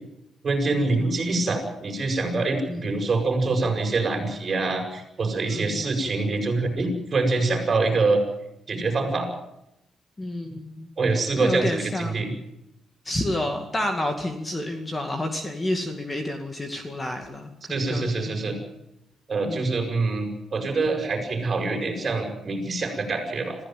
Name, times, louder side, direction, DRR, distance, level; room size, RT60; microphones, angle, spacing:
voice 1, 0.4-8.2 8.7-9.3 11.0-12.3 17.7-18.6 19.3-23.6, right 3 dB, 30° right, 3 dB, 7.2 m, -25 dB
voice 2, 10.2-10.9 11.4-12.2 13.0-18.5 19.5-19.7, left 1 dB, 15° left, 5 dB, 2.3 m, -30 dB
27.0 x 15.5 x 9.4 m, 0.86 s
cardioid pair, 150°, 0 cm